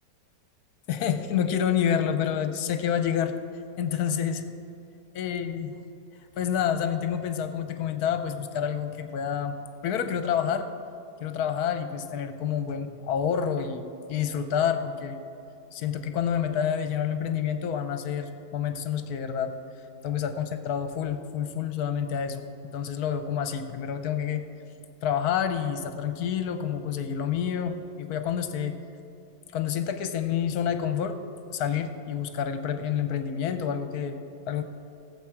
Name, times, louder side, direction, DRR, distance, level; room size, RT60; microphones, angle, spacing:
voice 1, 0.9-3.3 3.8-4.5 5.1-5.7 6.4-9.5 9.8-10.7 11.2-13.8 14.1-15.2 15.7-19.6 20.0-24.5 25.0-28.8 29.5-31.2 31.5-34.2 34.5-34.6, left 8 dB, 70° left, 9 dB, 1.2 m, -28 dB
18.0 x 7.5 x 4.5 m, 2.6 s
omnidirectional pair, 1.8 m